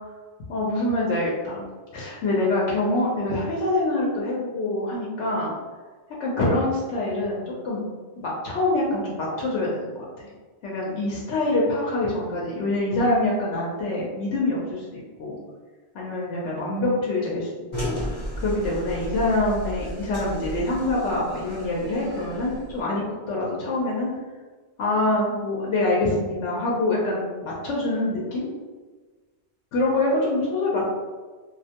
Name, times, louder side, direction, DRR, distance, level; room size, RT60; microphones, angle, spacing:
voice 1, 0.5-1.6 1.9-5.5 6.2-7.9 8.2-10.3 10.6-15.4 15.9-17.5 17.8-18.0 18.4-23.0 23.3-24.1 24.8-28.5 29.7-30.9, left 2 dB, 85° left, -4 dB, 0.9 m, -25 dB
sound 1, 17.7-22.8, equal, 35° left, 1.0 m, -34 dB
2.3 x 2.1 x 2.7 m, 1.4 s
omnidirectional pair, 1.2 m